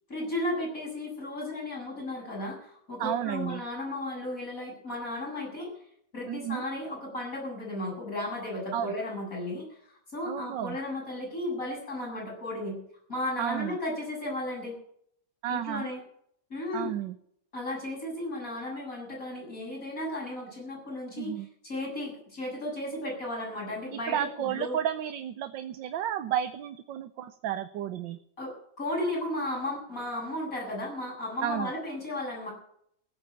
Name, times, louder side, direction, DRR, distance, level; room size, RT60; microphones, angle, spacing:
voice 1, 0.1-5.7 6.1-12.8 13.1-14.8 15.5-16.0 16.5-16.9 17.5-24.8 28.4-32.5, left 1 dB, 45° left, -3 dB, 8.6 m, -34 dB
voice 2, 3.0-3.6 6.3-6.6 8.7-8.9 10.2-10.8 13.4-13.8 15.4-15.9 16.7-17.2 21.2-21.5 24.1-28.2 31.4-31.7, right 10 dB, 85° right, 11 dB, 1.5 m, -32 dB
16.0 x 8.9 x 8.4 m, 0.68 s
omnidirectional pair, 1.9 m